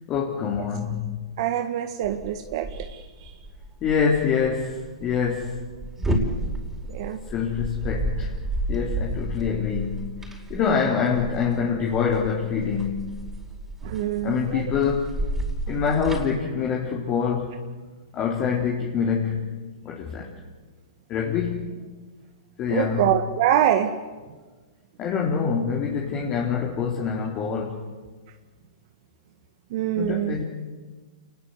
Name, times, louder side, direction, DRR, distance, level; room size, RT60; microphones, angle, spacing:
voice 1, 0.1-1.3 3.8-5.7 7.3-8.4 8.7-13.1 14.2-15.2 15.7-17.7 18.1-19.5 19.8-20.3 21.1-21.8 22.6-23.1 25.0-27.8 30.0-30.4, left 6 dB, 30° left, -2 dB, 3.7 m, -25 dB
voice 2, 1.4-3.3 6.9-7.2 10.6-10.9 13.8-14.6 22.7-23.9 29.7-30.4, right 11 dB, 50° right, 7 dB, 1.7 m, -25 dB
sound 1, 2.0-16.3, right 1 dB, 10° right, 5.2 m, -32 dB
28.5 x 20.0 x 8.2 m, 1.4 s
hypercardioid pair, 120°, 3 cm